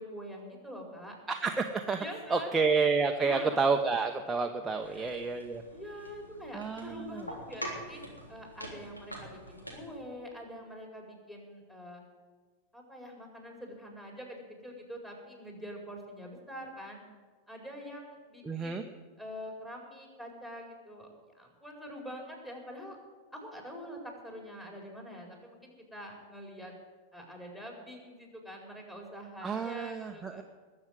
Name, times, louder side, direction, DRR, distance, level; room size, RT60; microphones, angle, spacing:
voice 1, 0.0-1.1 2.0-2.5 3.2-3.6 4.8-5.1 5.7-8.0 8.3-12.0 12.7-17.0 17.5-21.1 21.3-23.0 23.3-26.7 27.1-30.4, equal, 10° left, 0 dB, 4.8 m, -45 dB
voice 2, 1.3-2.0 2.3-5.6 6.5-7.3 18.4-18.8 29.4-30.4, right 4 dB, 15° right, 4 dB, 0.9 m, -30 dB
sound 1, 4.8-10.0, equal, 85° left, 3.7 m, -45 dB
20.5 x 7.6 x 8.1 m, 1.4 s
figure-of-eight pair, 90°, 0 cm